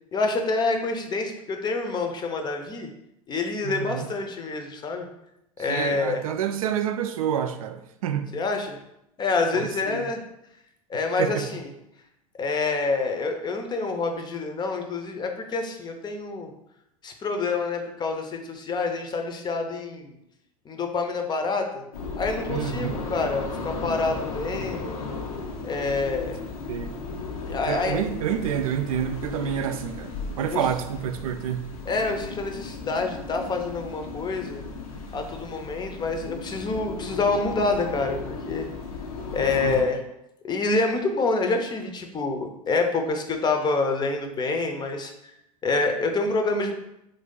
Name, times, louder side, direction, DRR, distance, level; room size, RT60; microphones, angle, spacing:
voice 1, 0.1-2.9 3.3-5.1 5.6-6.2 8.3-8.8 9.2-10.2 10.9-11.6 12.4-16.5 17.0-20.1 20.7-21.8 22.2-25.0 25.6-26.4 27.5-28.0 30.5-30.6 31.9-34.6 35.1-38.7 39.3-40.0 40.4-45.1 45.6-46.7, left 3 dB, 25° left, 5 dB, 0.6 m, -27 dB
voice 2, 3.6-4.1 5.7-8.3 9.5-10.1 11.2-11.5 22.5-23.0 26.7-26.9 27.7-31.7 39.6-39.9, right 9 dB, 75° right, 8 dB, 0.4 m, -28 dB
sound 1, 21.9-39.8, left 3 dB, 80° left, 0.6 m, -35 dB
3.0 x 2.7 x 3.7 m, 0.83 s
hypercardioid pair, 90°, 18 cm